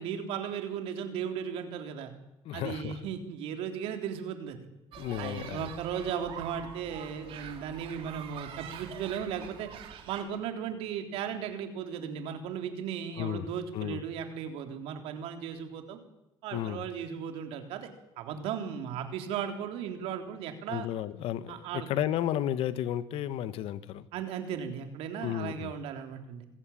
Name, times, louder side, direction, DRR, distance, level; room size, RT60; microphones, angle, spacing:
voice 1, 0.0-2.1 2.5-4.6 5.2-9.7 10.1-16.0 16.4-17.9 18.2-20.9 21.5-21.9 24.1-26.5, right 8 dB, 85° right, 5 dB, 3.5 m, -36 dB
voice 2, 2.4-3.0 5.0-5.7 13.2-13.5 13.7-14.0 16.5-16.8 18.3-18.4 20.7-24.1 25.2-25.7, left 11 dB, 75° left, 14 dB, 1.3 m, -33 dB
sound 1, 4.9-10.2, right 9 dB, 70° right, 3.4 m, -45 dB
26.0 x 15.5 x 8.7 m, 0.91 s
cardioid pair, 115°, 10 cm